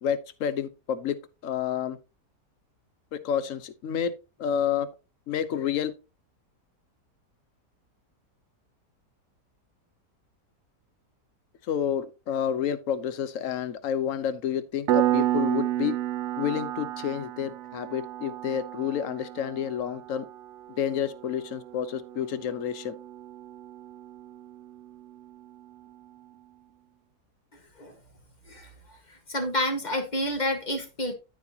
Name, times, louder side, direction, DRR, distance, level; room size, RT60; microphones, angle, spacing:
voice 1, 0.0-1.2 1.4-2.0 3.2-4.1 4.4-4.9 5.3-5.9 11.7-15.9 16.4-20.2 20.7-22.9, left 9 dB, 60° left, 1.1 m, -29 dB
Piano, 14.9-25.3, right 13 dB, 80° right, 0.6 m, -32 dB
voice 2, 29.1-31.1, left 1 dB, 25° left, 1.6 m, -29 dB
13.5 x 4.9 x 2.8 m
omnidirectional pair, 1.8 m